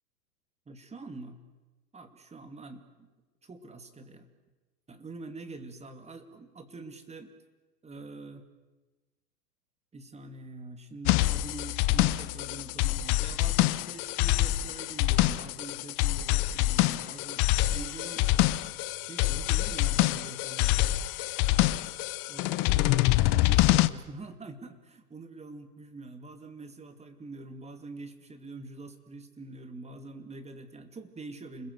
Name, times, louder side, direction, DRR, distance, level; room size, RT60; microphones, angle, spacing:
voice 1, 0.7-1.4 1.9-3.1 3.4-4.3 4.9-7.3 7.8-8.5 9.9-18.3 19.0-20.8 22.3-23.0 23.4-31.7, right 2 dB, 15° right, 7 dB, 2.6 m, -45 dB
sound 1, 11.1-23.9, left 17 dB, 35° left, 0.9 m, -26 dB
29.5 x 21.5 x 8.2 m, 1.2 s
hypercardioid pair, 110°, 50 cm